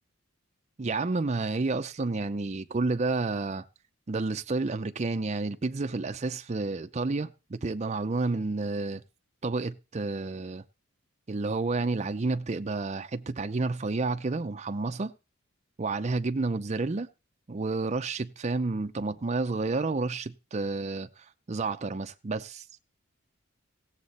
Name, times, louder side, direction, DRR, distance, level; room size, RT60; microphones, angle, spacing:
voice 1, 0.8-3.6 4.1-9.0 9.4-10.6 11.3-15.1 15.8-17.1 17.5-22.7, right 3 dB, 35° right, 0.5 m, -30 dB
16.5 x 7.4 x 4.1 m
head